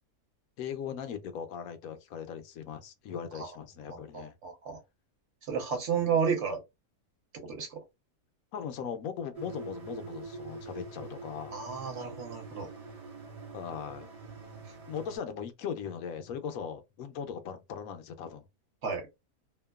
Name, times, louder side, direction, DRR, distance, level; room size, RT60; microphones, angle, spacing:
voice 1, 0.6-4.3 6.0-6.3 8.5-11.6 13.5-14.1 14.9-18.4, left 7 dB, 75° left, 1.0 m, -39 dB
voice 2, 4.1-4.8 5.5-6.6 7.4-7.8 11.5-12.7 18.8-19.0, right 6 dB, 55° right, 1.1 m, -31 dB
sound 1, 9.3-15.2, right 3 dB, 35° right, 0.6 m, -45 dB
2.8 x 2.2 x 2.3 m
omnidirectional pair, 1.6 m